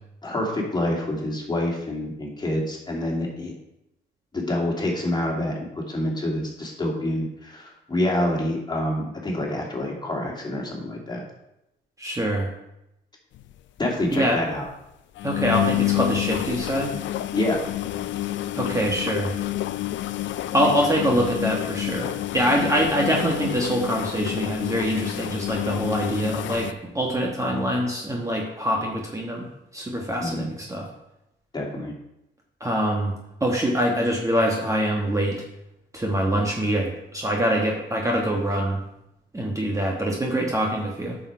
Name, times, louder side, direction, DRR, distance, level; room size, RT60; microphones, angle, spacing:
voice 1, 0.2-3.5 4.3-11.2 13.8-14.6 17.3-17.6 30.2-30.5 31.5-31.9, left 1 dB, 20° left, -1 dB, 2.7 m, -27 dB
voice 2, 12.0-12.5 14.1-14.4 15.2-16.9 18.5-19.3 20.5-30.9 32.6-33.1 33.4-35.4 35.9-38.8 39.3-41.2, equal, 15° right, 0 dB, 1.3 m, -24 dB
sound 1, 13.3-13.5 13.8-13.9 14.1-14.2 14.5-14.7 15.2-26.7, left 15 dB, 70° left, 0.5 m, -29 dB
8.9 x 6.4 x 4.6 m, 0.87 s
cardioid pair, 90°, 20 cm